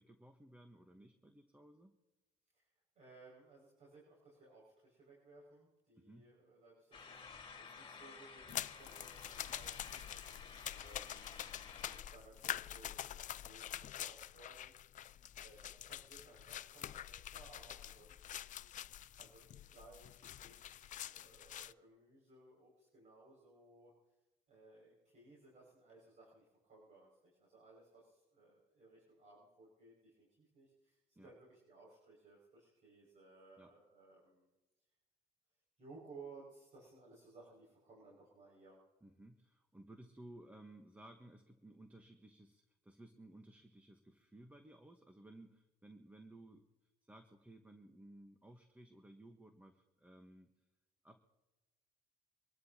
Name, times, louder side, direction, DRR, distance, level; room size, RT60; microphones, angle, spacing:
voice 1, 0.0-1.9 5.9-6.2 31.1-31.3 33.6-33.7 39.0-46.7 47.0-50.5 51.0-51.2, right 1 dB, 10° right, 5 dB, 1.2 m, -58 dB
voice 2, 2.5-14.7 15.4-18.7 19.2-23.9 24.5-34.5 35.8-38.8, right 3 dB, 45° right, -4 dB, 6.2 m, -61 dB
sound 1, 6.9-12.0, left 5 dB, 30° left, 2.8 m, -53 dB
sound 2, 8.5-21.7, left 11 dB, 50° left, 0.5 m, -46 dB
25.0 x 12.5 x 2.9 m, 1.1 s
cardioid pair, 110°, 17 cm